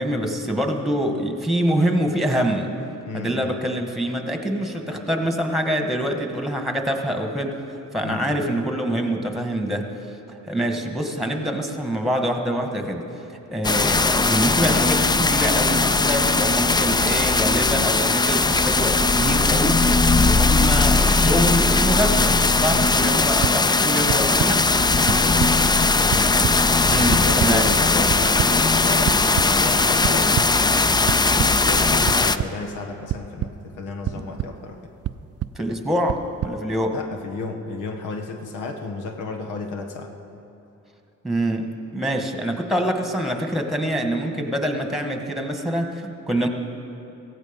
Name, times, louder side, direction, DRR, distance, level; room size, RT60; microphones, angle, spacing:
voice 1, 0.0-2.8 3.1-7.6 7.9-9.9 10.3-13.1 13.5-24.7 26.9-27.6 34.1-34.2 35.6-37.0 41.2-46.5, equal, ahead, 4 dB, 1.7 m, -25 dB
voice 2, 3.1-3.5 8.0-8.4 22.7-23.0 23.5-23.6 25.1-25.8 26.9-30.5 31.5-34.8 36.9-40.1, left 3 dB, 90° left, 4 dB, 1.4 m, -33 dB
sound 1, 13.6-32.4, left 3 dB, 15° left, 0.4 m, -19 dB
sound 2, 23.4-23.5 24.1-24.5 25.1-25.5 25.9-26.5 27.1-27.5 28.1-28.5 29.1-29.5 30.0-30.5 31.1-31.5 32.1-32.5 33.1-33.5 34.0-34.5 35.0-35.5 36.1-36.5, right 13 dB, 55° right, 0.4 m, -25 dB
17.0 x 15.5 x 5.3 m, 2.8 s
cardioid pair, 90°, 30 cm